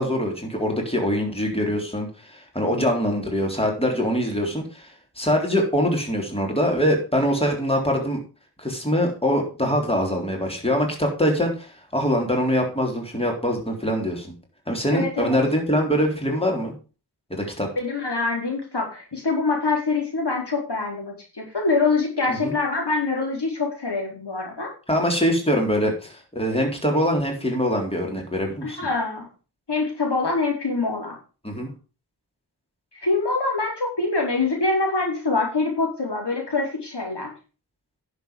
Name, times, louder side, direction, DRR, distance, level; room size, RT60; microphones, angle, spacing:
voice 1, 0.0-4.9 5.2-8.2 8.6-14.3 14.7-16.7 17.3-17.7 22.4-22.5 24.9-28.8 31.4-31.7, equal, 15° left, 1 dB, 3.7 m, -23 dB
voice 2, 14.9-15.4 17.8-24.7 28.6-29.3 29.7-31.2 33.0-37.3, left 3 dB, 75° left, 0 dB, 4.3 m, -25 dB
10.5 x 7.2 x 5.2 m, 0.34 s
wide cardioid pair, 50°, 41 cm